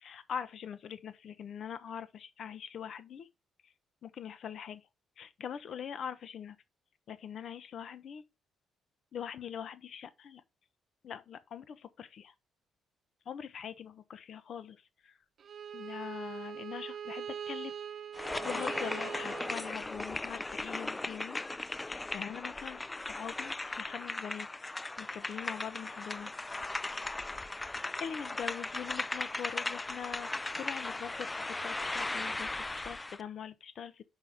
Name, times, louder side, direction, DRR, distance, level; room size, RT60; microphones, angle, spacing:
voice 1, 0.0-3.3 4.0-4.8 5.2-6.6 7.1-8.2 9.1-10.4 11.0-12.3 13.3-15.1 15.7-17.7 18.4-21.5 21.7-24.5 25.0-26.3 27.8-34.0, left 8 dB, 60° left, 1.0 m, -43 dB
Bowed string instrument, 15.4-20.4, right 8 dB, 55° right, 0.8 m, -42 dB
sound 1, 18.1-33.2, left 2 dB, 15° left, 0.4 m, -37 dB
5.8 x 5.5 x 4.9 m
cardioid pair, 90°, 0 cm